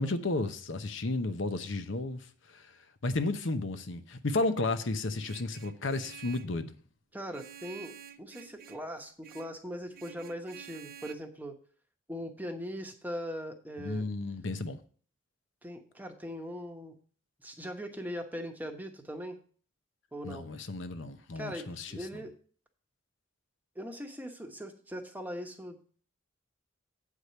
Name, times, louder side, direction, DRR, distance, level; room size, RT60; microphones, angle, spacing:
voice 1, 0.0-2.7 3.0-6.8 13.8-14.8 20.2-21.9, left 2 dB, 65° left, 0.8 m, -33 dB
Vehicle horn car horn honking, 5.2-6.6 7.3-8.9 9.2-9.6 9.9-11.1, right 9 dB, 50° right, 0.5 m, -50 dB
voice 2, 7.1-7.9 8.2-11.6 12.1-14.0 15.6-16.9 17.4-19.4 20.1-20.5 21.3-22.3 23.7-25.8, equal, 10° right, 1.1 m, -40 dB
8.2 x 4.8 x 6.8 m
head